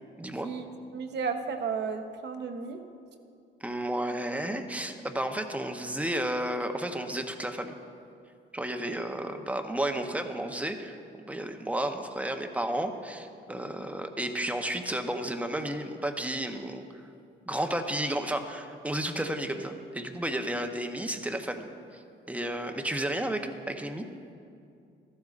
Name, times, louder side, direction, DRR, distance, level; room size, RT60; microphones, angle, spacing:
voice 1, 0.2-0.5 3.6-7.7 8.5-11.0 11.3-16.9 17.5-22.0 22.3-24.1, right 1 dB, 5° right, 6 dB, 0.8 m, -32 dB
voice 2, 0.9-2.8, right 5 dB, 60° right, 6 dB, 0.9 m, -33 dB
14.0 x 11.5 x 2.5 m, 2.5 s
cardioid pair, 90°, 20 cm